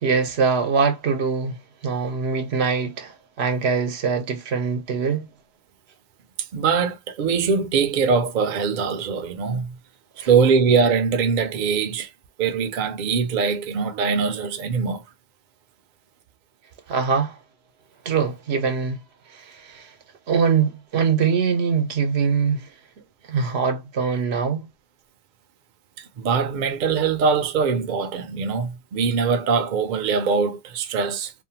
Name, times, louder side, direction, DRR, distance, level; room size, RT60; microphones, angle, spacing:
voice 1, 0.0-5.3 10.2-10.3 16.9-17.4 18.0-19.0 19.3-19.9 20.3-22.7 23.3-24.7, right 5 dB, 85° right, 1.0 m, -23 dB
voice 2, 6.4-9.8 10.2-12.1 12.4-15.0 26.0-31.3, right 5 dB, 55° right, 0.6 m, -22 dB
2.6 x 2.1 x 2.7 m
omnidirectional pair, 1.1 m